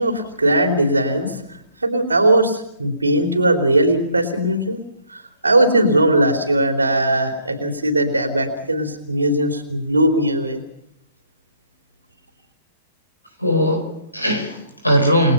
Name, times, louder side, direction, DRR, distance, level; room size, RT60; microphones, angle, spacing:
voice 1, 0.0-1.4 1.8-4.8 5.1-10.6, right 1 dB, 80° right, 5 dB, 3.8 m, -19 dB
voice 2, 13.4-15.3, equal, 90° left, 6 dB, 4.7 m, -19 dB
29.0 x 20.5 x 5.7 m, 0.75 s
figure-of-eight pair, 90°, 0 cm